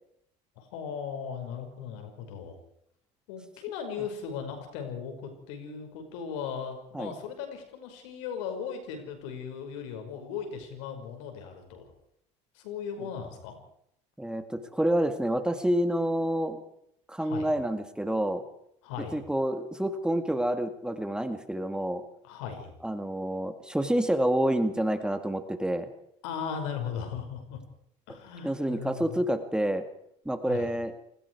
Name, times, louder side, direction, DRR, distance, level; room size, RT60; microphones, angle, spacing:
voice 1, 0.6-2.6 3.3-11.9 12.5-13.6 17.2-17.5 18.8-19.2 22.2-22.7 26.2-27.6 28.1-29.2 30.5-30.7, left 7 dB, 85° left, 5 dB, 5.7 m, -37 dB
voice 2, 14.2-16.6 17.1-18.4 19.1-22.0 22.8-25.9 28.4-29.8 30.3-30.9, right 1 dB, 5° right, 8 dB, 2.3 m, -28 dB
28.5 x 20.0 x 4.8 m, 0.72 s
supercardioid pair, 90°, 15 cm